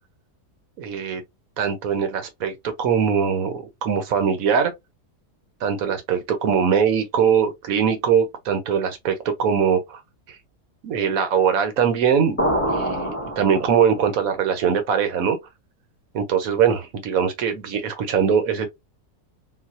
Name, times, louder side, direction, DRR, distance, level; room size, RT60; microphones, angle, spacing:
voice 1, 0.8-1.2 1.6-4.7 5.6-10.0 10.8-12.4 12.7-15.4 16.1-18.7, right 7 dB, 65° right, 1.2 m, -21 dB
sound 1, 12.4-14.1, equal, 10° left, 0.8 m, -25 dB
4.0 x 2.4 x 2.5 m
omnidirectional pair, 1.7 m